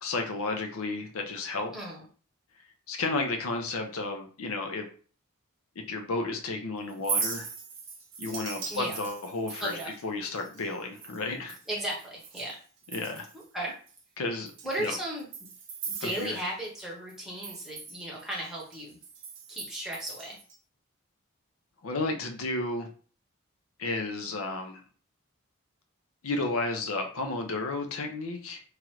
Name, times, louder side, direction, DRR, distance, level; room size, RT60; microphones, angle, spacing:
voice 1, 0.0-1.7 2.9-4.9 5.9-7.5 8.2-11.6 12.9-13.3 14.2-14.5 14.8-14.9 16.0-16.4 21.8-22.9 23.8-24.8 26.2-28.6, left 3 dB, 75° left, 4 dB, 0.6 m, -32 dB
voice 2, 1.7-2.0 8.7-9.0 9.6-9.9 11.7-12.6 13.3-13.7 14.6-15.3 15.8-19.0 19.5-20.4, right 1 dB, ahead, -4 dB, 0.9 m, -35 dB
Chink clink, 6.9-12.6 12.8-13.4 13.9-14.0 14.5-16.8 17.1-20.6, right 5 dB, 60° right, 0.8 m, -39 dB
3.0 x 2.4 x 3.0 m, 0.40 s
head